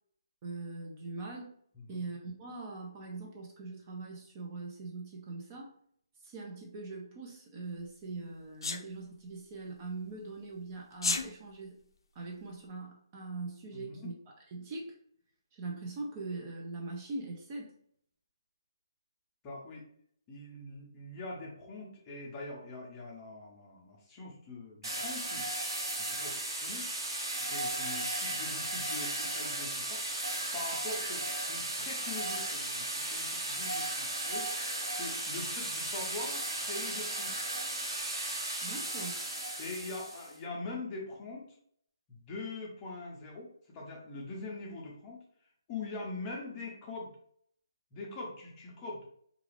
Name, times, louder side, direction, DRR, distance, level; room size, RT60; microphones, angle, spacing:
voice 1, 0.4-1.6 1.9-5.7 6.2-11.8 12.1-14.1 14.5-14.9 15.5-17.7 38.6-39.2, right 3 dB, 25° right, -1 dB, 0.5 m, -42 dB
Sneeze, 8.6-8.8 10.9-11.3, left 4 dB, 70° left, 0.4 m, -30 dB
voice 2, 13.7-14.1 19.4-19.9 20.3-25.5 26.0-26.9 27.3-30.0 30.5-37.3 39.6-41.5 42.1-45.2 45.7-47.1 47.9-49.1, left 3 dB, 20° left, -2 dB, 0.6 m, -43 dB
sound 1, 24.8-40.3, right 1 dB, 80° right, 1.0 m, -35 dB
2.4 x 2.3 x 3.2 m, 0.64 s
hypercardioid pair, 160°, 2 cm